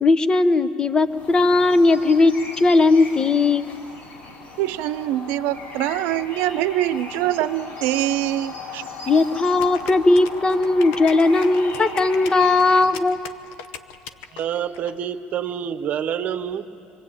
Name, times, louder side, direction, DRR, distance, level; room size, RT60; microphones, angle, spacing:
voice 1, 0.0-3.7 9.1-13.2, left 3 dB, 25° left, 13 dB, 0.9 m, -18 dB
sound 1, 1.1-12.9, left 4 dB, 60° left, 5.7 m, -37 dB
voice 2, 4.6-8.8, right 14 dB, 75° right, 13 dB, 0.7 m, -24 dB
sound 2, 9.6-14.9, left 8 dB, 80° left, 1.0 m, -39 dB
voice 3, 14.3-16.7, right 9 dB, 50° right, 9 dB, 0.9 m, -27 dB
26.0 x 21.5 x 8.9 m, 2.7 s
supercardioid pair, 105°, 3 cm